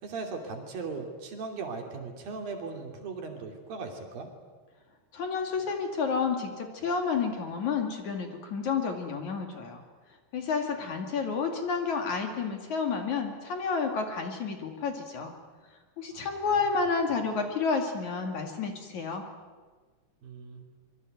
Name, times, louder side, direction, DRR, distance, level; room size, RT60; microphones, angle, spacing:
voice 1, 0.0-4.3 16.1-16.4 20.2-20.6, right 4 dB, 60° right, 3 dB, 4.7 m, -38 dB
voice 2, 5.1-9.8 10.3-15.3 16.0-19.2, left 5 dB, 50° left, 4 dB, 3.3 m, -30 dB
25.5 x 23.0 x 9.4 m, 1.4 s
omnidirectional pair, 4.7 m